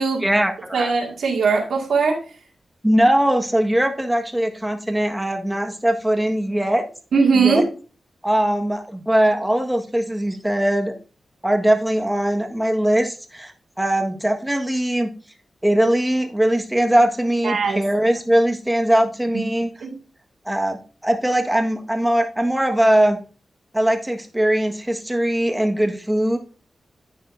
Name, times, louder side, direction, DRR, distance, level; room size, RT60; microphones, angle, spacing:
voice 1, 0.2-0.9 2.8-6.8 7.3-7.7 8.2-10.9 11.4-15.1 15.6-19.7 20.4-23.2 23.7-26.4, right 1 dB, 10° right, 4 dB, 1.5 m, -20 dB
voice 2, 0.7-2.2 7.1-7.7 17.4-17.8 19.3-19.4 19.8-19.9, right 5 dB, 85° right, 0 dB, 2.1 m, -19 dB
10.5 x 9.3 x 2.7 m, 0.37 s
cardioid pair, 70°, 0 cm